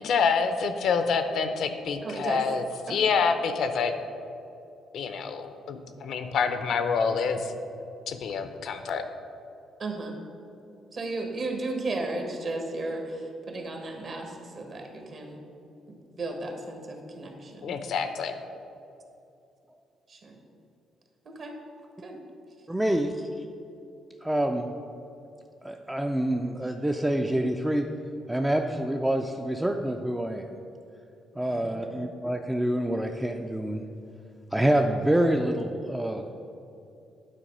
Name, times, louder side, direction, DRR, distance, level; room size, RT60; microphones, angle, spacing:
voice 1, 0.0-2.6 2.9-3.9 4.9-7.5 8.1-9.0 17.6-18.4, left 5 dB, 70° left, 8 dB, 0.6 m, -27 dB
voice 2, 2.0-2.4 2.9-3.0 9.8-10.2 10.9-15.4 15.9-17.8 20.1-20.4 21.2-21.6 22.0-22.2 31.4-32.0, right 2 dB, 50° right, 3 dB, 1.3 m, -35 dB
voice 3, 22.7-23.3 24.2-24.7 25.6-27.9 28.3-30.5 31.4-33.8 34.5-36.2, right 1 dB, 10° right, 3 dB, 0.4 m, -26 dB
9.1 x 4.0 x 5.3 m, 2.7 s
cardioid pair, 90°, 0 cm